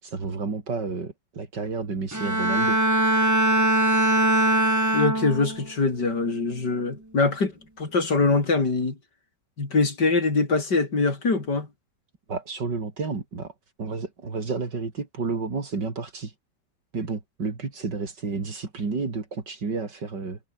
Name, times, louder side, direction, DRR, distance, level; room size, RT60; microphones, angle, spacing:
voice 1, 0.0-2.8 12.3-13.5 13.8-16.3 16.9-20.4, right 4 dB, 80° right, 4.0 m, -31 dB
Bowed string instrument, 2.1-5.7 6.1-6.5, right 1 dB, 10° right, 2.1 m, -22 dB
voice 2, 4.9-7.5 7.8-9.0 9.6-11.7, left 3 dB, 75° left, 4.8 m, -23 dB
omnidirectional pair, 1.8 m